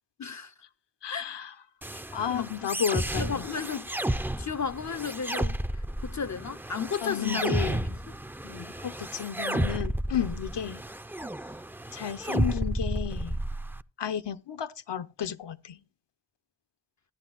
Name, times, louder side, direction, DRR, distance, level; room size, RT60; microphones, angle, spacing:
voice 1, 0.2-0.5 1.1-1.3 1.9-2.0 2.3-2.5 3.2-3.9 4.4-7.5 8.4-8.8, left 6 dB, 40° left, 0.6 m, -34 dB
voice 2, 1.0-1.6 2.1-3.5 7.0-7.9 8.8-10.8 11.9-13.4 14.0-15.8, left 9 dB, 70° left, 0.9 m, -32 dB
sound 1, 1.8-13.8, right 1 dB, 5° right, 0.4 m, -32 dB
14.0 x 10.5 x 2.4 m
cardioid pair, 65°, 43 cm